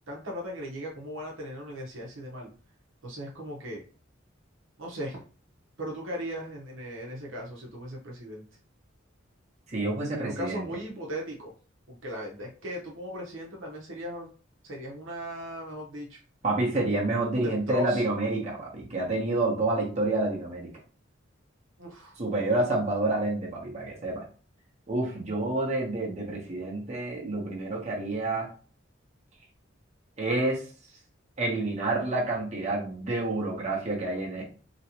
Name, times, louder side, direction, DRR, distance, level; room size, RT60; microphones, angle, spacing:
voice 1, 0.1-2.5 3.0-3.8 4.8-5.2 5.8-8.4 10.2-11.5 11.9-14.3 14.6-16.2 17.3-18.0 21.8-22.2, equal, 80° right, -1 dB, 0.9 m, -37 dB
voice 2, 9.7-10.6 16.4-20.7 22.2-24.2 24.9-28.5 30.2-30.6 31.4-34.5, right 2 dB, 35° right, -3 dB, 0.9 m, -28 dB
3.0 x 2.8 x 2.9 m, 0.39 s
head